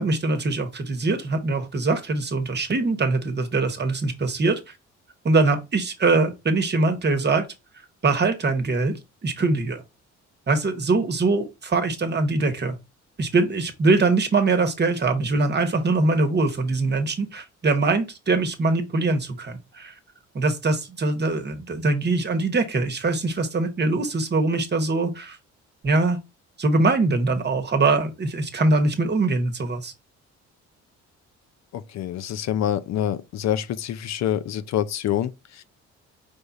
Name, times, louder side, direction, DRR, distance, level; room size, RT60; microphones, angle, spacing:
voice 1, 0.0-4.6 5.2-7.5 8.0-9.0 9.2-9.8 10.5-12.8 13.2-19.9 20.3-25.4 25.8-26.2 26.6-29.9, right 3 dB, 35° right, 1.0 m, -22 dB
voice 2, 31.7-35.6, left 11 dB, 60° left, 0.5 m, -26 dB
5.1 x 2.3 x 4.0 m
cardioid pair, 90°, 30 cm